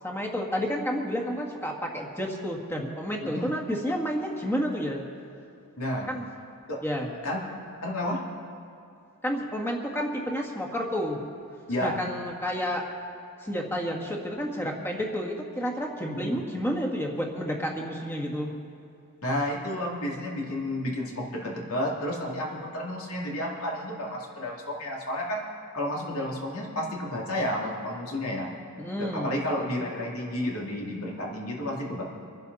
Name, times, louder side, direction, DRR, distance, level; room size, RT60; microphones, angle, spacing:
voice 1, 0.0-5.0 6.1-6.3 6.8-7.1 9.2-11.2 11.8-12.9 13.4-18.5 28.8-29.3, equal, 10° left, 0 dB, 1.8 m, -30 dB
voice 2, 5.8-6.1 6.7-6.8 7.2-7.4 7.8-8.2 11.7-11.9 16.1-16.4 19.2-25.4 25.7-28.5 29.0-32.0, left 1 dB, 70° left, -2 dB, 2.9 m, -31 dB
25.5 x 10.5 x 4.1 m, 2.6 s
head